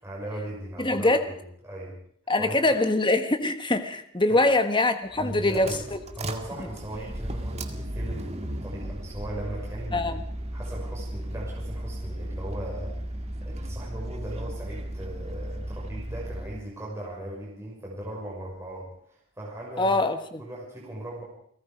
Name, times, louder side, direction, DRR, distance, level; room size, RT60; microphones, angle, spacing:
voice 1, 0.0-1.9 2.4-2.6 4.3-4.4 5.2-5.9 6.1-10.1 10.5-20.0 20.4-21.2, right 1 dB, 15° right, -4 dB, 6.2 m, -38 dB
voice 2, 0.8-1.3 2.3-6.0 9.9-10.2 19.8-20.4, left 2 dB, 20° left, 8 dB, 1.4 m, -23 dB
sound 1, 5.1-16.6, right 1 dB, 30° right, 2.0 m, -35 dB
30.0 x 18.5 x 5.2 m, 0.64 s
head